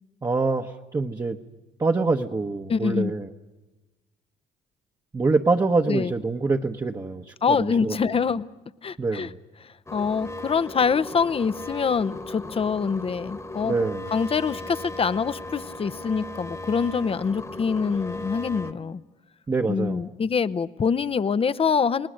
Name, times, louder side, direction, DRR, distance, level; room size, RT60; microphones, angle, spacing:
voice 1, 0.2-1.4 1.8-3.3 5.1-7.9 9.0-9.3 13.6-14.0 19.5-20.0, right 3 dB, 25° right, 2 dB, 1.1 m, -25 dB
voice 2, 2.7-3.1 5.9-6.1 7.4-8.5 8.8-9.3 9.6-13.7 14.1-19.0 19.7-22.1, left 5 dB, 35° left, 14 dB, 0.7 m, -25 dB
sound 1, 9.9-18.7, left 1 dB, 20° left, 1.4 m, -37 dB
29.0 x 19.0 x 6.5 m, 1.1 s
supercardioid pair, 75°, 17 cm